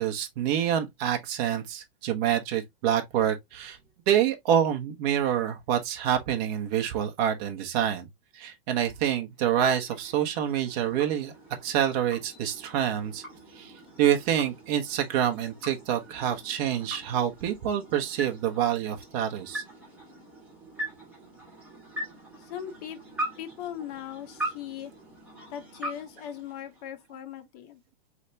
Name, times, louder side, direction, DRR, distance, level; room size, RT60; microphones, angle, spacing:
voice 1, 0.0-3.8 4.1-8.1 8.3-11.3 11.6-13.2 13.5-13.7 14.0-19.6, right 10 dB, 40° right, 1.1 m, -27 dB
sound 1, 9.3-27.1, right 1 dB, 5° right, 2.4 m, -42 dB
voice 2, 22.4-23.0 23.4-24.9 25.5-27.8, left 10 dB, 40° left, 1.0 m, -39 dB
4.6 x 3.5 x 2.8 m
hypercardioid pair, 150°, 30 cm